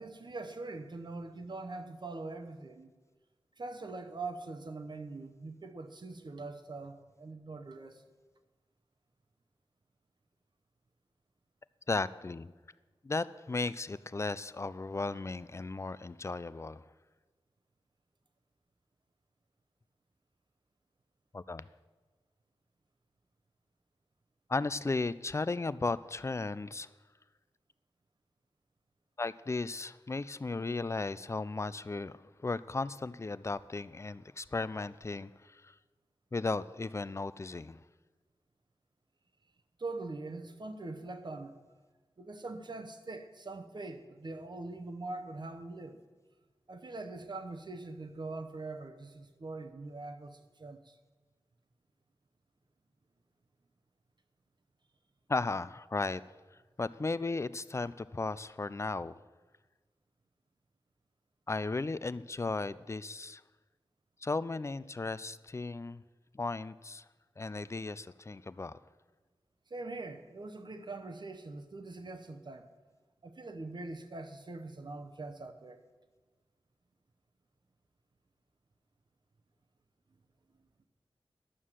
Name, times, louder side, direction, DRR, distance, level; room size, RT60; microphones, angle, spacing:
voice 1, 0.0-2.9 3.6-8.0 39.8-41.5 42.2-46.0 46.7-50.8 69.7-72.7 73.2-75.8, right 3 dB, 55° right, 1.0 m, -43 dB
voice 2, 11.9-12.5 13.0-16.8 21.3-21.6 24.5-26.9 29.2-35.7 36.3-37.8 55.3-56.2 56.8-59.1 61.5-63.4 64.2-66.0 66.3-67.0 67.4-68.8, left 3 dB, 30° left, 0.4 m, -35 dB
11.0 x 6.5 x 7.5 m
wide cardioid pair, 85°, 9 cm